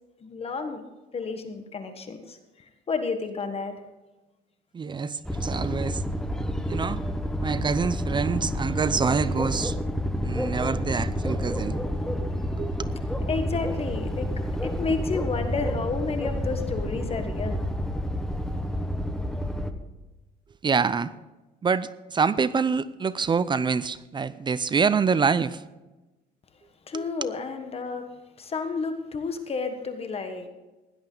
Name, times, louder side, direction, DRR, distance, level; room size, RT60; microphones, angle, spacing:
voice 1, 0.2-0.8 1.1-3.8 13.3-14.3 14.6-17.7 26.9-28.0 28.4-30.5, left 4 dB, 35° left, 7 dB, 1.4 m, -31 dB
voice 2, 4.7-6.0 6.7-7.0 7.4-9.8 10.2-11.8 12.6-12.8 20.6-21.1 21.6-25.6 26.9-27.1, right 5 dB, 25° right, 16 dB, 0.5 m, -26 dB
sound 1, 5.2-19.7, equal, 5° left, 1.1 m, -29 dB
16.5 x 11.0 x 3.9 m, 1.1 s
cardioid pair, 110°, 17 cm